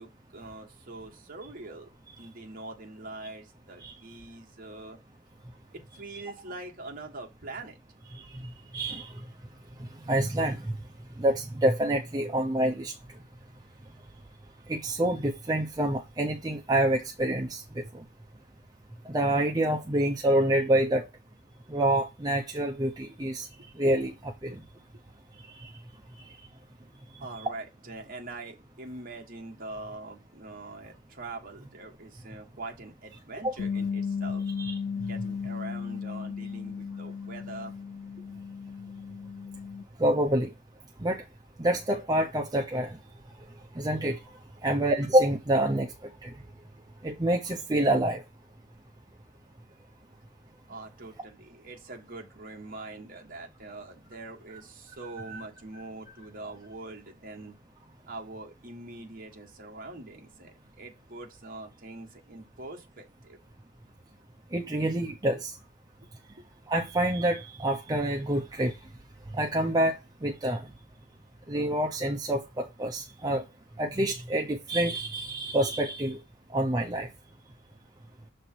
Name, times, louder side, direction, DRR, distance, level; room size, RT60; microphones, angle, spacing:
voice 1, 0.0-1.9 2.2-5.0 5.7-7.8 27.2-34.4 34.9-37.7 50.7-57.6 58.1-63.4 66.4-66.5, right 2 dB, 45° right, 1.4 m, -43 dB
voice 2, 8.7-9.1 10.1-10.7 11.2-12.9 14.7-17.8 19.1-21.1 21.7-23.5 23.8-24.6 25.6-25.7 33.4-33.5 34.6-34.8 40.0-40.5 41.0-41.2 41.6-43.0 43.7-44.2 44.6-45.9 46.2-46.3 47.0-48.2 55.3-55.4 64.5-65.5 66.7-68.7 69.3-70.7 71.5-73.4 73.8-76.2 76.5-77.1, right 1 dB, 20° right, 0.6 m, -27 dB
Bass guitar, 33.6-39.8, left 6 dB, 90° left, 0.4 m, -35 dB
7.0 x 3.3 x 4.4 m
head